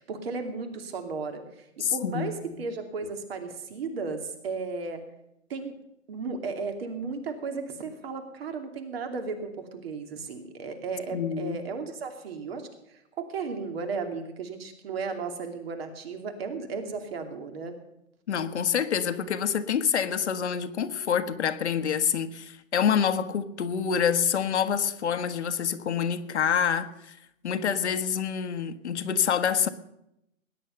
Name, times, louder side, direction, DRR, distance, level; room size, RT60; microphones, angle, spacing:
voice 1, 0.0-5.0 5.5-5.7 6.1-17.8, right 4 dB, 50° right, 2.8 m, -35 dB
voice 2, 1.8-2.3 11.1-11.6 18.3-27.1 27.4-29.7, left 7 dB, 60° left, 1.4 m, -27 dB
20.0 x 10.0 x 6.9 m
hypercardioid pair, 145°, 39 cm